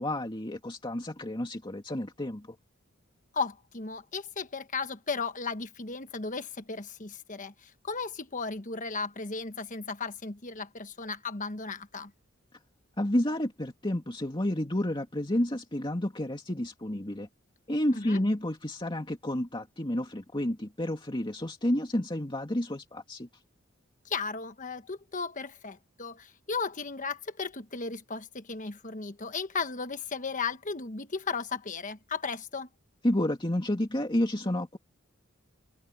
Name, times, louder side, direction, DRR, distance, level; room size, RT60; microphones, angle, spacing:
voice 1, 0.0-2.6 13.0-17.3 17.7-23.3 33.0-34.8, left 1 dB, 25° left, 2.4 m, -30 dB
voice 2, 3.3-12.1 17.9-18.2 24.0-32.7, left 4 dB, 40° left, 1.4 m, -35 dB
open air
head